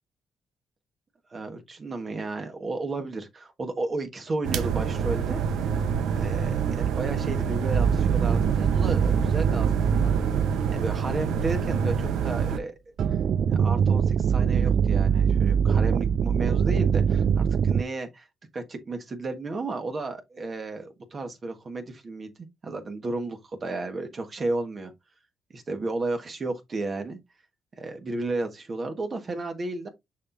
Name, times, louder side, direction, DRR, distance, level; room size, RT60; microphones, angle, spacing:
voice 1, 1.3-5.4 6.1-10.1 10.7-12.7 13.5-18.3 18.5-22.3 22.6-24.9 25.5-27.2 27.8-29.9, right 2 dB, 40° right, 1.4 m, -33 dB
sound 1, 4.4-12.6, right 7 dB, 85° right, 0.9 m, -26 dB
sound 2, 7.7-12.0 13.0-17.8, right 7 dB, 60° right, 0.4 m, -23 dB
6.4 x 5.8 x 2.6 m
cardioid pair, 90°, 0 cm